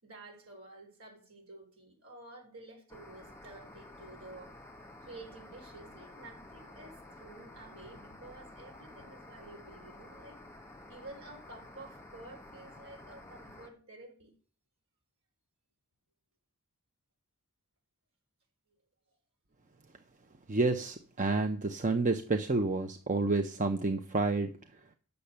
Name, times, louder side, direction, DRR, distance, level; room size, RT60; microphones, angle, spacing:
voice 1, 0.0-4.6 5.0-10.4 10.9-14.3, right 2 dB, 65° right, 4.1 m, -51 dB
sound 1, 2.9-13.7, left 1 dB, 10° left, 2.0 m, -51 dB
voice 2, 20.5-24.5, right 3 dB, 35° right, 0.7 m, -29 dB
10.0 x 6.9 x 6.7 m
head